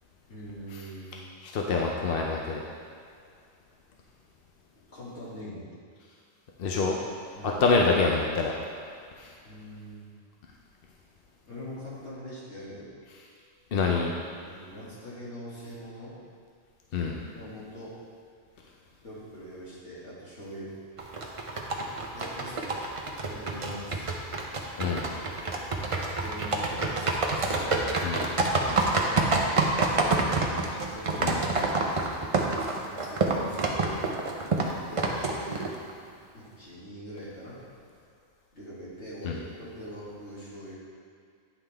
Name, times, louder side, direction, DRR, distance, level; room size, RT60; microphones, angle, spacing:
voice 1, 0.3-1.3 4.9-5.7 7.3-7.6 9.4-10.1 11.5-12.9 14.5-16.2 17.3-18.0 19.0-20.7 21.2-21.3 22.1-22.8 23.3-24.3 25.7-25.8 26.2-28.0 28.6-29.4 30.0-31.4 32.1-35.7 36.3-37.6 38.5-40.8, equal, 75° left, -9 dB, 2.5 m, -43 dB
voice 2, 1.4-2.6 6.6-7.0 7.4-8.5 9.2-9.3 13.7-14.1 16.9-17.2 24.8-25.1 28.0-28.2 31.2-31.4 39.2-39.4, left 4 dB, 60° left, -1 dB, 0.8 m, -26 dB
sound 1, 21.0-35.9, right 3 dB, 35° right, 0.6 m, -28 dB
9.6 x 5.5 x 3.4 m, 2.3 s
omnidirectional pair, 1.2 m